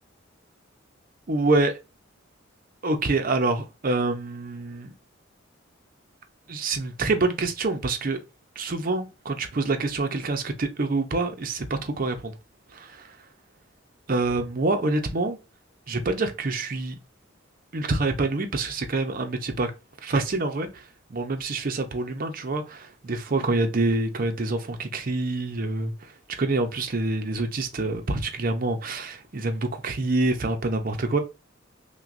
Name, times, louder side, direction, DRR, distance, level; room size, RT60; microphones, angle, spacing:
voice 1, 1.3-1.7 2.8-4.9 6.5-8.2 8.6-12.3 12.7-13.1 14.1-15.4 15.9-17.0 17.7-19.7 20.0-20.8 21.1-26.1 26.4-31.2, right 2 dB, 45° right, 0.6 m, -26 dB
5.8 x 2.2 x 2.5 m
head